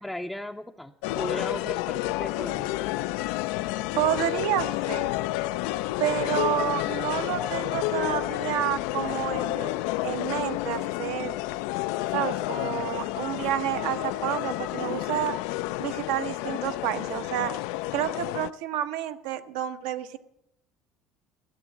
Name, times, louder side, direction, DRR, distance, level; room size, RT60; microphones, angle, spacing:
voice 1, 0.0-2.7, left 1 dB, 5° left, 3 dB, 0.5 m, -36 dB
sound 1, 1.0-18.5, left 18 dB, 85° left, 0.4 m, -30 dB
voice 2, 4.0-5.1 6.0-9.7 10.0-11.4 12.1-15.3 15.8-17.5 17.9-20.2, right 12 dB, 85° right, 8 dB, 1.0 m, -29 dB
14.0 x 7.2 x 8.8 m, 0.80 s
cardioid pair, 145°, 0 cm